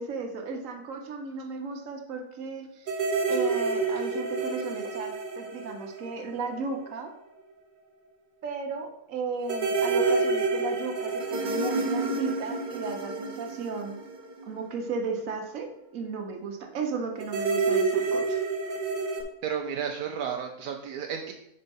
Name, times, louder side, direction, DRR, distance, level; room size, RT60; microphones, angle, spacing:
voice 1, 0.0-2.9 3.3-7.1 8.4-14.1 14.5-18.4, right 4 dB, 60° right, 3 dB, 1.3 m, -35 dB
sound 1, 2.9-6.6 6.9-7.0 9.5-14.9 17.2-19.2, right 3 dB, 45° right, 0.8 m, -28 dB
voice 2, 19.4-21.3, right 7 dB, 80° right, 3 dB, 1.1 m, -32 dB
5.3 x 4.3 x 5.3 m, 0.80 s
omnidirectional pair, 1.6 m